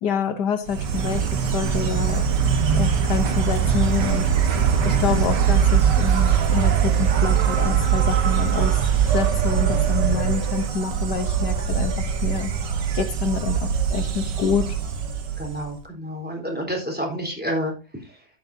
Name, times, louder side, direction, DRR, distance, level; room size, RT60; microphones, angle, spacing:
voice 1, 0.0-2.4 2.7-4.3 4.8-8.8 9.1-12.5 12.9-14.8, left 6 dB, 75° left, 10 dB, 1.5 m, -27 dB
Insect, 0.7-15.8, right 7 dB, 80° right, 1.9 m, -21 dB
voice 2, 15.4-18.3, equal, 5° right, 0 dB, 3.9 m, -29 dB
12.5 x 8.8 x 2.7 m, 0.33 s
omnidirectional pair, 1.8 m